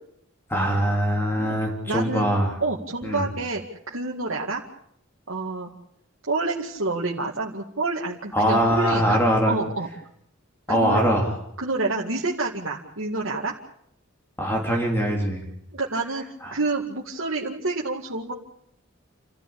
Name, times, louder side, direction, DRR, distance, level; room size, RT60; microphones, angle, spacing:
voice 1, 0.5-2.5 3.0-3.3 8.3-9.6 10.7-11.3 14.4-15.4 16.4-16.6, equal, 10° left, 1 dB, 3.5 m, -22 dB
voice 2, 1.4-2.3 2.6-3.6 3.9-4.6 5.3-5.7 6.3-9.2 9.5-9.9 10.7-11.0 11.6-13.5 15.7-16.2 16.5-18.3, right 3 dB, 80° right, -2 dB, 2.1 m, -28 dB
29.0 x 14.0 x 8.5 m, 0.73 s
head